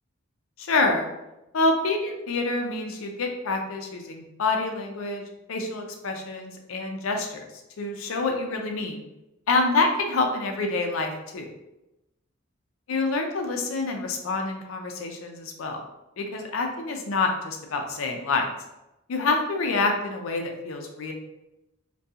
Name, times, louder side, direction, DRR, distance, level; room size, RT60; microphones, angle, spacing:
voice 1, 0.6-1.1 1.5-5.2 5.5-7.4 7.8-9.0 9.5-11.5 12.9-15.8 16.2-18.5 19.1-21.1, left 3 dB, 75° left, 3 dB, 0.4 m, -27 dB
2.7 x 2.2 x 2.3 m, 0.93 s
head